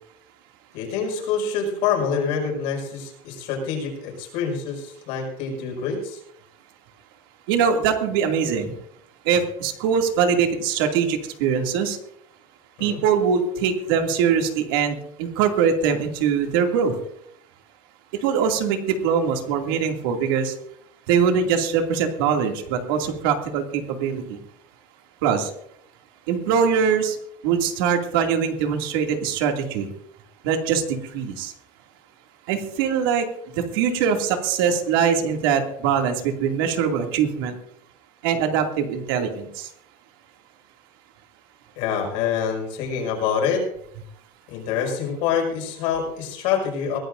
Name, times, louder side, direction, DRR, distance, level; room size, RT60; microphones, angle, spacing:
voice 1, 0.7-6.2 12.8-13.0 41.8-43.6 44.5-47.0, left 6 dB, 60° left, 2 dB, 5.6 m, -26 dB
voice 2, 7.5-8.7 9.2-12.0 12.8-17.0 18.1-20.5 21.1-24.4 25.2-25.5 26.3-27.2 27.4-29.9 30.4-31.5 32.5-33.3 33.5-37.6 38.2-39.7, right 7 dB, 80° right, 3 dB, 2.5 m, -22 dB
22.5 x 16.5 x 2.6 m, 0.71 s
cardioid pair, 180°, 12 cm